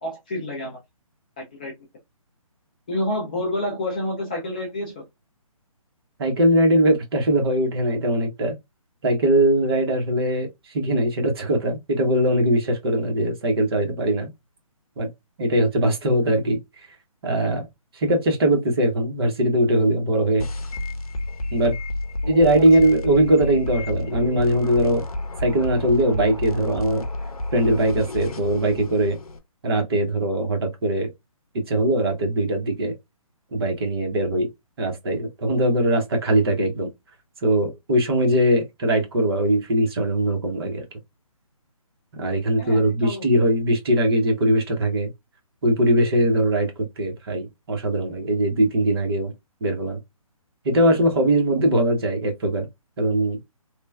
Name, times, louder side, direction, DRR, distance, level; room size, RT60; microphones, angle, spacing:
voice 1, 0.0-0.8 1.4-1.7 2.9-5.0 22.2-22.6 42.6-43.3, left 1 dB, 15° left, 0.3 m, -29 dB
voice 2, 6.2-8.6 9.0-10.5 10.7-14.3 15.0-15.1 15.4-16.6 17.2-17.7 17.9-20.5 21.5-21.7 22.3-25.0 25.4-27.0 27.5-29.2 29.6-31.1 31.7-33.0 33.5-34.5 34.8-36.9 37.4-40.8 42.2-45.1 45.6-46.7 47.0-49.3 49.6-50.0 50.6-52.7 53.0-53.4, right 1 dB, 45° right, 1.0 m, -21 dB
sound 1, 20.4-29.4, left 2 dB, 85° left, 0.6 m, -30 dB
3.0 x 2.1 x 2.2 m
hypercardioid pair, 155°, 18 cm